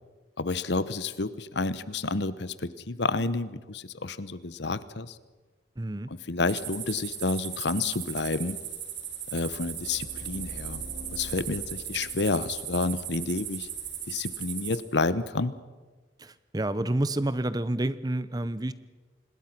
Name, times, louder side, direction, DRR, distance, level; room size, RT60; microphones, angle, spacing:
voice 1, 0.4-5.2 6.3-8.6 9.3-10.8 11.1-13.7 14.1-15.5, left 3 dB, 65° left, 16 dB, 1.0 m, -30 dB
voice 2, 5.8-6.1 16.2-18.7, right 1 dB, 20° right, 15 dB, 0.7 m, -29 dB
sound 1, 6.5-14.8, right 9 dB, 75° right, 3.7 m, -37 dB
sound 2, 9.3-14.2, right 1 dB, 55° right, 3.0 m, -46 dB
26.0 x 20.5 x 6.0 m, 1.3 s
head